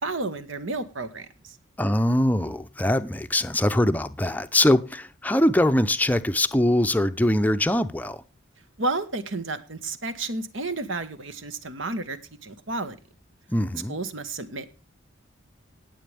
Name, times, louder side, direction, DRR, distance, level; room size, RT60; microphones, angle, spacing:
voice 1, 0.0-1.6 8.8-13.0 13.9-14.8, right 3 dB, 70° right, 1.4 m, -31 dB
voice 2, 1.8-8.2 13.5-14.0, left 1 dB, 10° left, 0.6 m, -22 dB
18.5 x 7.7 x 3.5 m
head